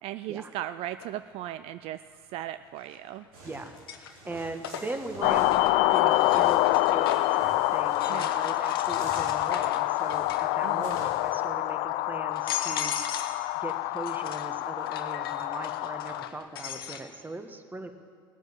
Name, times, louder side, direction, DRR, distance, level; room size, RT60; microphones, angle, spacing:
voice 1, 0.0-2.0 2.3-3.3 5.3-5.5 8.1-8.4 10.6-11.0, right 13 dB, 55° right, 13 dB, 0.4 m, -37 dB
sound 1, 1.0-1.1 2.8-3.3 3.7-7.4 7.9-10.5 10.8-11.3 11.9-12.0 12.3-13.4 13.7-17.0, left 8 dB, 85° left, 1.0 m, -38 dB
sound 2, 3.3-11.4, right 2 dB, 80° right, 4.1 m, -47 dB
voice 2, 4.0-5.6 5.9-12.9 13.5-17.9, right 2 dB, 15° right, 7 dB, 1.4 m, -39 dB
sound 3, 5.2-16.3, left 17 dB, 60° left, 0.4 m, -26 dB
19.0 x 7.9 x 7.3 m, 2.1 s
hypercardioid pair, 75°, 12 cm